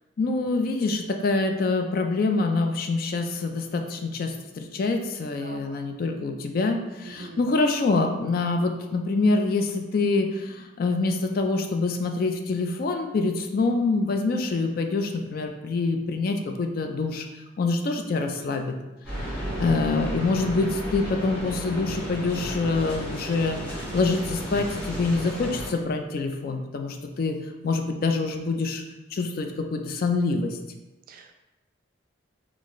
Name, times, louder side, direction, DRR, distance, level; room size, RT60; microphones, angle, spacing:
voice 1, 0.2-17.3 17.6-18.8 19.2-27.4 27.6-28.8 29.1-30.6, left 3 dB, 50° left, 4 dB, 0.3 m, -26 dB
voice 2, 5.4-5.8 7.1-7.4 19.4-19.8 31.1-31.3, right 3 dB, 45° right, 4 dB, 0.3 m, -42 dB
sound 1, 19.0-25.7, equal, 5° left, 1.5 m, -33 dB
4.0 x 2.4 x 3.0 m, 1.0 s
head